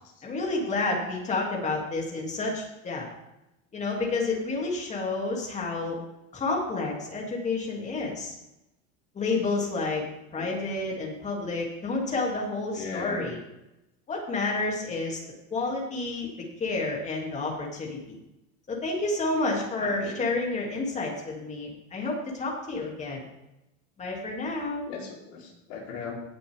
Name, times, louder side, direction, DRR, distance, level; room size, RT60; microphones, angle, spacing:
voice 1, 0.2-3.1 3.7-6.0 6.3-8.3 9.1-10.0 10.3-13.4 14.1-15.2 15.5-16.3 16.6-18.2 18.7-23.2 24.0-24.8, left 3 dB, 20° left, -2 dB, 2.7 m, -30 dB
voice 2, 12.8-13.3 19.8-20.2 24.9-26.2, left 5 dB, 50° left, -2 dB, 4.0 m, -38 dB
17.5 x 6.9 x 3.6 m, 0.92 s
supercardioid pair, 155°, 38 cm